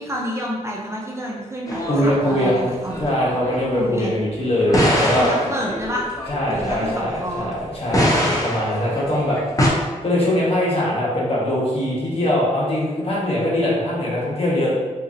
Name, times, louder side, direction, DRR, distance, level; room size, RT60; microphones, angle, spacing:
voice 1, 0.0-3.0 3.7-4.2 5.1-6.1 6.5-7.5, equal, 20° right, -3 dB, 0.6 m, -28 dB
sound 1, 1.7-3.6 4.6-7.5 7.9-9.7, equal, 25° left, 0.7 m, -23 dB
voice 2, 1.9-2.7 3.0-5.3 6.3-9.4 9.7-14.7, left 1 dB, 50° left, -6 dB, 1.3 m, -22 dB
4.1 x 2.6 x 2.6 m, 1.3 s
cardioid pair, 75°, 13 cm